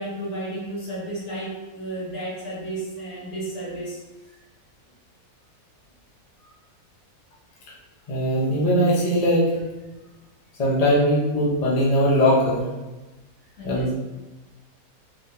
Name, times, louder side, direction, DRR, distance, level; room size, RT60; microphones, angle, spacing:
voice 1, 0.0-4.0 13.6-13.9, right 1 dB, 60° left, -6 dB, 1.5 m, -32 dB
voice 2, 8.1-9.5 10.6-12.6 13.6-13.9, equal, 35° left, -6 dB, 0.7 m, -20 dB
3.6 x 3.4 x 2.8 m, 1.1 s
omnidirectional pair, 1.6 m